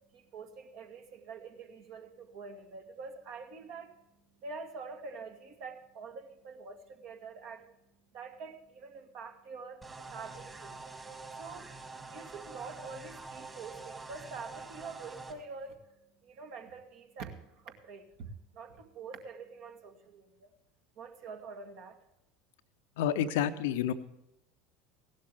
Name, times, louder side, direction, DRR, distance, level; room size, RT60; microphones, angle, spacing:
voice 1, 0.1-4.0 4.4-7.7 8.1-10.8 11.3-11.7 12.1-16.0 16.2-20.5 21.0-22.0, right 4 dB, 50° right, 5 dB, 1.8 m, -46 dB
sound 1, 9.8-15.3, right 3 dB, 20° right, 2.1 m, -46 dB
voice 2, 23.0-23.9, left 10 dB, 60° left, 11 dB, 0.7 m, -29 dB
16.5 x 12.0 x 3.4 m, 0.87 s
figure-of-eight pair, 70°, 0 cm